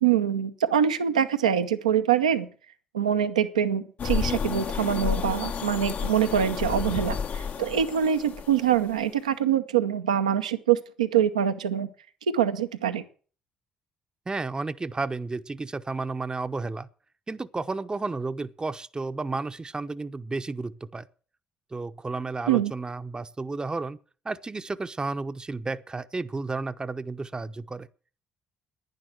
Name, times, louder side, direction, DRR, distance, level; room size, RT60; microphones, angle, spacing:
voice 1, 0.0-2.5 2.9-11.9 12.3-13.0 22.5-22.7, right 9 dB, 90° right, 0.7 m, -24 dB
sound 1, 4.0-9.1, left 6 dB, 50° left, 0.9 m, -31 dB
voice 2, 14.3-16.9 17.3-21.1 21.7-24.0 24.2-27.9, right 3 dB, 20° right, 0.7 m, -32 dB
11.0 x 10.5 x 7.9 m
hypercardioid pair, 45°, 4 cm